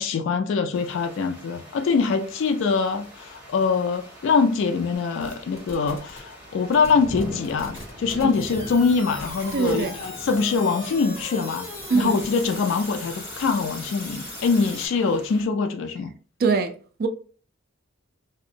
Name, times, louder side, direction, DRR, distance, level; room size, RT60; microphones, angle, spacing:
voice 1, 0.0-11.7 11.9-16.1, left 5 dB, 65° left, 0.3 m, -23 dB
sound 1, 0.7-15.5, left 1 dB, 10° right, 0.7 m, -43 dB
sound 2, 5.2-6.2 6.7-14.9, left 1 dB, 15° left, 1.5 m, -38 dB
voice 2, 9.5-10.0 11.9-12.2 16.4-17.1, right 4 dB, 50° right, 0.4 m, -23 dB
2.5 x 2.0 x 2.7 m
head